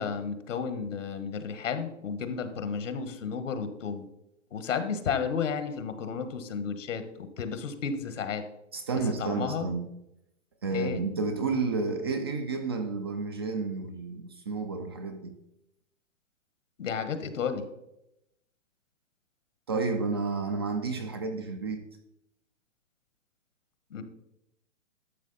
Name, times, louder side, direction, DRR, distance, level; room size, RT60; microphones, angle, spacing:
voice 1, 0.0-4.0 4.5-8.4 9.2-9.7 10.7-11.0 16.8-17.6 23.9-24.0, left 6 dB, 75° left, 10 dB, 1.5 m, -32 dB
voice 2, 8.7-9.9 10.6-15.3 19.7-21.9, right 4 dB, 20° right, 7 dB, 0.4 m, -31 dB
12.0 x 6.4 x 4.1 m, 0.85 s
hypercardioid pair, 155°, 38 cm